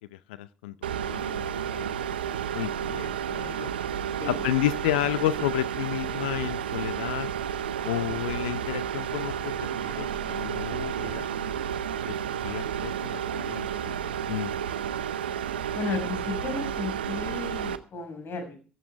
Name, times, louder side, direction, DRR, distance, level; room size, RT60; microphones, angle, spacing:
voice 1, 0.1-1.4 1.7-1.9 2.5-3.7 4.2-7.3 7.8-11.3 12.1-12.2 12.4-14.6, left 15 dB, 75° left, 17 dB, 0.5 m, -32 dB
sound 1, 0.8-17.8, right 8 dB, 85° right, 0.7 m, -31 dB
voice 2, 15.7-18.6, left 4 dB, 50° left, 6 dB, 6.3 m, -34 dB
14.5 x 13.5 x 3.4 m, 0.36 s
figure-of-eight pair, 50°, 5 cm